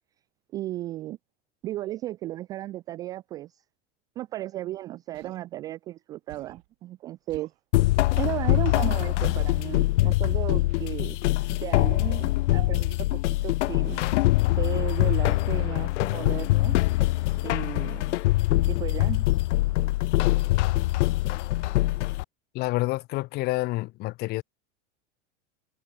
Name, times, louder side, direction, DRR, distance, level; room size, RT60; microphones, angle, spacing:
voice 1, 0.5-1.2 1.6-3.6 4.2-7.5 8.2-11.2 11.5-14.0 14.6-16.8 17.4-18.2 18.7-19.4, right 15 dB, 10° right, 0.3 m, -35 dB
Human voice, 5.1-5.4 6.3-6.7 7.3-7.6 9.3-9.5 10.7-11.0 12.2-12.5 13.9-14.3 14.9-15.3 15.6-15.9, right 18 dB, 60° right, 5.9 m, -49 dB
sound 1, 7.7-22.2, left 18 dB, 75° left, 0.8 m, -24 dB
voice 2, 22.5-24.4, left 20 dB, 25° left, 1.2 m, -28 dB
supercardioid pair, 175°, 36 cm